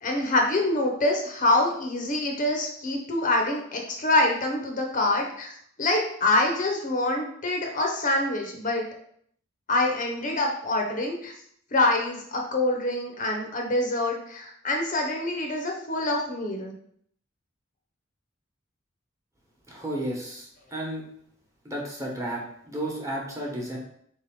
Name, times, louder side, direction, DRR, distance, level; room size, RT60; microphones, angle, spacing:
voice 1, 0.0-5.5 5.8-8.9 9.7-11.3 11.7-16.7, left 2 dB, 40° left, 1 dB, 0.7 m, -25 dB
voice 2, 19.7-21.0 21.6-23.8, right 1 dB, 15° right, -2 dB, 1.1 m, -33 dB
4.0 x 3.5 x 3.7 m, 0.66 s
head